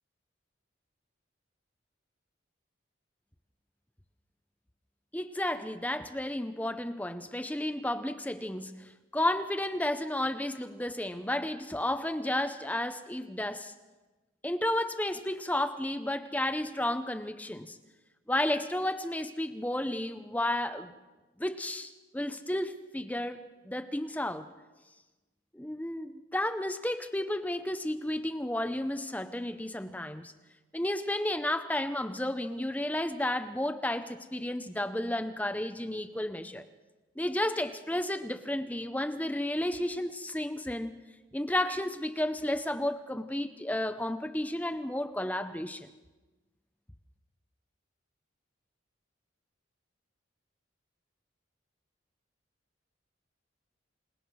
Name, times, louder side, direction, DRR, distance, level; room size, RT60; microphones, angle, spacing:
voice 1, 5.1-13.7 14.4-17.8 18.3-20.9 21.4-24.5 25.5-30.3 30.7-36.6 37.2-41.0 41.3-45.9, left 1 dB, 10° left, 10 dB, 0.7 m, -32 dB
28.5 x 19.0 x 6.2 m, 1.2 s
head